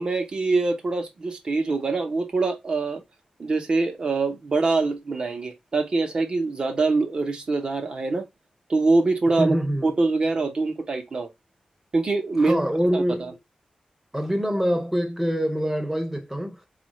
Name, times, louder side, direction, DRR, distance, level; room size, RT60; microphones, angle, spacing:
voice 1, 0.0-3.0 3.4-8.3 8.7-9.6 9.8-11.3 11.9-13.3, right 3 dB, 40° right, 0.9 m, -24 dB
voice 2, 9.4-9.9 12.4-13.3 14.1-16.7, equal, 10° right, 0.8 m, -25 dB
4.7 x 2.5 x 3.0 m
wide cardioid pair, 165°, 2 cm